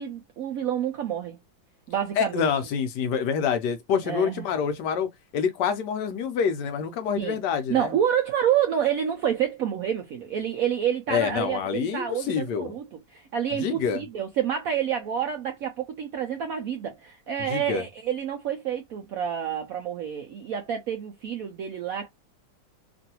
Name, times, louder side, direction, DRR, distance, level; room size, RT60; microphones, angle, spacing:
voice 1, 0.0-1.4 1.9-2.5 4.0-4.5 7.2-7.4 7.7-12.8 13.1-22.1, right 9 dB, 75° right, 0.8 m, -28 dB
voice 2, 2.2-7.9 11.1-12.7 13.6-14.0 17.4-17.8, left 7 dB, 75° left, 1.1 m, -27 dB
3.0 x 2.6 x 2.8 m
omnidirectional pair, 2.0 m